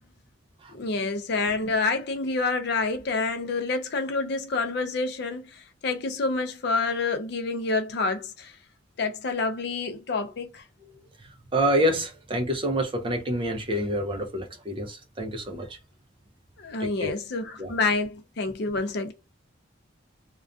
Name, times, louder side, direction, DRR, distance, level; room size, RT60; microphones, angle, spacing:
voice 1, 0.7-8.5 9.0-10.6 16.6-19.1, left 3 dB, 55° left, 0.4 m, -28 dB
voice 2, 11.5-15.8 16.8-17.1 17.6-17.7, equal, 25° right, 0.5 m, -27 dB
2.4 x 2.2 x 2.3 m
head